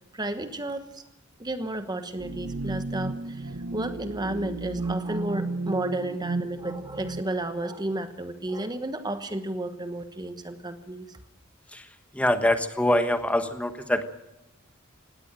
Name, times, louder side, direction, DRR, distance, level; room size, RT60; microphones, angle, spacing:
voice 1, 0.1-1.0 1.4-11.2, right 1 dB, 20° right, 9 dB, 1.1 m, -32 dB
sound 1, 2.2-7.2, right 3 dB, 75° right, 0.8 m, -33 dB
voice 2, 11.7-14.1, left 1 dB, 5° left, 8 dB, 1.2 m, -25 dB
19.0 x 17.5 x 8.9 m, 0.95 s
head